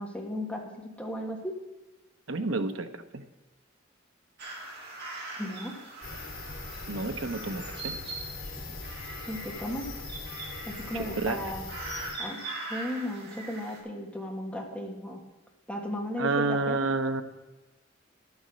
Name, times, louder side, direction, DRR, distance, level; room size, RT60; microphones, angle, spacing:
voice 1, 0.0-1.5 5.4-5.7 8.6-8.8 9.3-9.9 10.6-11.6 12.2-12.4 12.7-15.2 15.7-16.8, left 1 dB, 5° left, 0 dB, 1.6 m, -35 dB
voice 2, 2.3-2.9 3.1-3.2 6.9-7.9 10.9-11.4 16.2-17.2, right 3 dB, 85° right, 7 dB, 0.9 m, -29 dB
sound 1, 4.4-13.8, right 2 dB, 55° right, 2.9 m, -41 dB
sound 2, 6.0-12.2, left 3 dB, 85° left, 2.2 m, -41 dB
10.5 x 7.2 x 6.3 m, 1.1 s
head